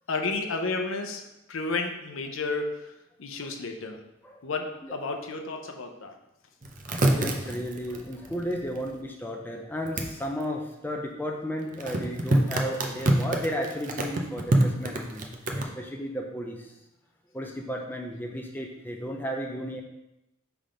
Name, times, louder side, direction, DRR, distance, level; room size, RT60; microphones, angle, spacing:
voice 1, 0.1-1.2 1.5-2.8 3.2-4.0 4.4-6.1 15.6-15.8, left 3 dB, 75° left, 4 dB, 0.7 m, -32 dB
sound 1, 6.6-9.0 9.9-10.1 11.8-15.6, right 1 dB, 40° right, 0.6 m, -26 dB
voice 2, 6.9-15.2 15.5-16.7 17.3-19.8, equal, 10° left, 1 dB, 0.5 m, -34 dB
5.8 x 3.5 x 5.0 m, 0.91 s
head